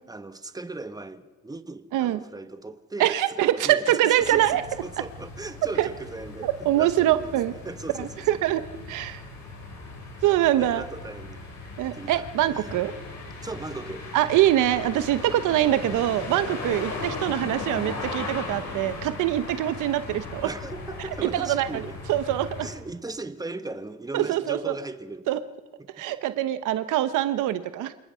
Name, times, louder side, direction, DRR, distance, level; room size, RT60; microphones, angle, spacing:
voice 1, 0.1-8.4 10.6-11.4 11.8-12.7 13.4-14.1 20.4-22.0 22.6-25.4 25.8-26.0, right 2 dB, 10° right, 1.3 m, -38 dB
voice 2, 3.0-4.6 5.8-5.9 6.4-7.5 8.0-8.6 8.9-9.2 10.2-10.8 11.8-12.9 14.1-20.5 21.2-21.8 22.1-22.7 24.1-24.8 25.3-25.4 26.0-27.9, right 13 dB, 90° right, 1.0 m, -24 dB
sound 1, 4.2-22.7, left 3 dB, 65° left, 6.8 m, -38 dB
28.0 x 19.0 x 5.7 m
cardioid pair, 90°, 30 cm